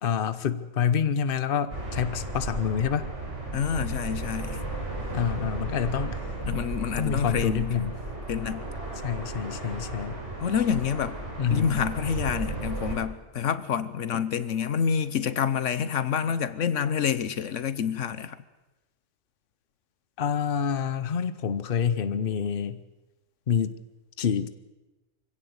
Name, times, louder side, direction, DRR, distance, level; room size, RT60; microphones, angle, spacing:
voice 1, 0.0-3.1 5.1-6.2 7.0-8.0 9.0-10.2 11.4-11.7 20.2-22.8 23.5-23.8 24.2-24.5, left 7 dB, 50° left, 1.1 m, -27 dB
sound 1, 1.7-13.0, right 2 dB, 75° right, 6.2 m, -34 dB
voice 2, 3.5-4.6 6.5-7.7 8.3-8.7 10.4-11.2 11.5-18.4, left 7 dB, 80° left, 1.3 m, -27 dB
24.0 x 16.5 x 8.0 m
omnidirectional pair, 1.3 m